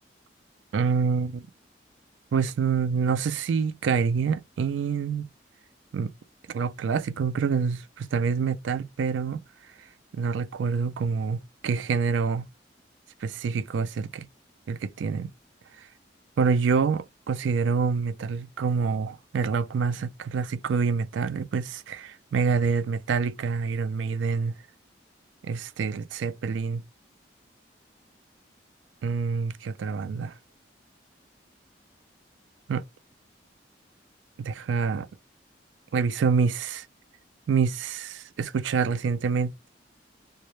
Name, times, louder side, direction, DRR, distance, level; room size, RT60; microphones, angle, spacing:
voice 1, 0.7-1.4 2.3-5.3 5.9-6.1 6.5-9.4 10.1-12.5 13.2-14.3 14.7-15.3 16.4-24.5 25.4-26.8 29.0-30.3 32.7-32.8 34.4-35.1 35.9-36.9 37.5-39.7, right 5 dB, 85° right, 0.3 m, -26 dB
2.1 x 2.1 x 2.9 m
head